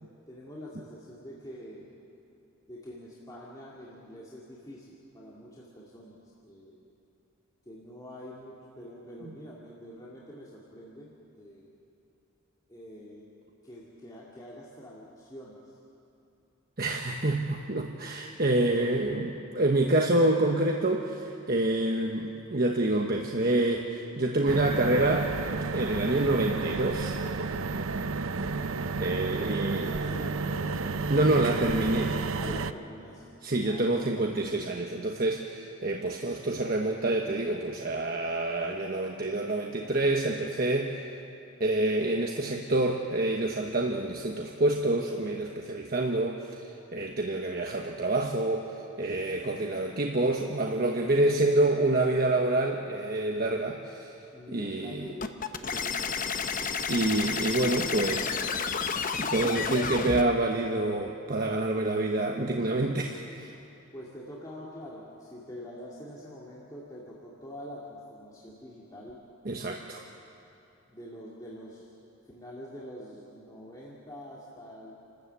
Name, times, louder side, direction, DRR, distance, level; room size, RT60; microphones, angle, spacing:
voice 1, 0.3-1.9 2.7-6.9 7.6-11.7 12.7-13.3 13.6-15.8 29.5-31.4 32.3-33.3 33.6-34.0 49.3-49.5 54.3-56.5 63.9-69.2 70.9-71.9 72.3-75.0, equal, 20° left, -6 dB, 2.3 m, -45 dB
voice 2, 16.8-25.3 25.7-27.2 29.0-29.9 31.1-32.2 33.4-41.0 41.6-48.7 49.0-54.1 54.5-55.1 56.9-58.4 59.2-63.5 69.4-70.0, right 2 dB, 45° right, 1 dB, 1.2 m, -27 dB
sound 1, 24.5-32.7, right 4 dB, 80° right, 0.7 m, -31 dB
sound 2, 55.2-60.2, left 5 dB, 40° left, 0.8 m, -31 dB
29.0 x 13.0 x 8.3 m, 2.7 s
head